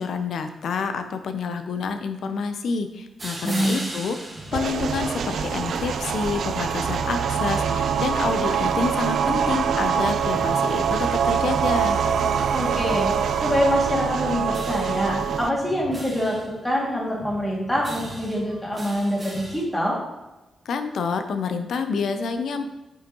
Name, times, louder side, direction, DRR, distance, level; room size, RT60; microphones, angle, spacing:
voice 1, 0.0-12.0 20.7-22.6, left 5 dB, 75° left, 8 dB, 0.6 m, -28 dB
sound 1, 3.2-19.6, right 1 dB, 25° right, 1.3 m, -40 dB
voice 2, 3.4-3.9 12.5-13.1 13.4-20.0, equal, 5° left, -3 dB, 2.3 m, -25 dB
sound 2, 4.5-15.5, right 7 dB, 70° right, 0.4 m, -24 dB
6.9 x 5.6 x 3.0 m, 1.0 s
cardioid pair, 85°, 0 cm